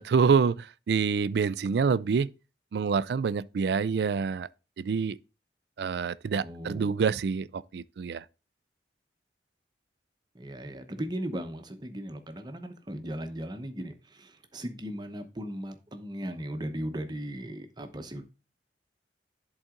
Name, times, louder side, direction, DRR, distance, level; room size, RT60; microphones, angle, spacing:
voice 1, 0.0-2.3 2.7-4.5 4.8-5.2 5.8-8.2, right 5 dB, 65° right, 0.3 m, -26 dB
voice 2, 6.3-7.0 10.3-18.2, equal, 25° right, 0.9 m, -37 dB
10.5 x 4.1 x 3.7 m
head